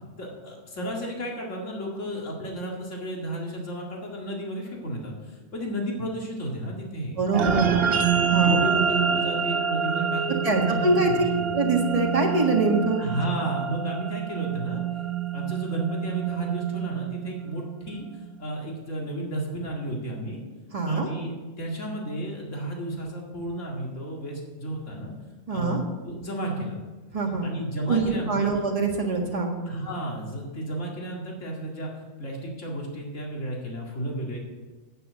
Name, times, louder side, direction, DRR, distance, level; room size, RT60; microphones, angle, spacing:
voice 1, 0.2-8.0 8.4-11.5 13.0-14.8 15.3-18.1 18.4-20.4 20.8-25.1 25.5-26.8 27.4-28.5 29.7-31.9 32.2-34.4, right 1 dB, 70° left, -2 dB, 2.5 m, -33 dB
voice 2, 7.2-7.6 8.3-8.6 10.4-11.2 11.5-13.0 20.7-21.1 25.5-25.8 27.1-27.5 27.9-29.6, right 3 dB, 25° right, 0 dB, 1.7 m, -24 dB
sound 1, 7.3-18.0, right 7 dB, 55° right, 0.9 m, -27 dB
9.1 x 8.2 x 6.3 m, 1.3 s
omnidirectional pair, 1.4 m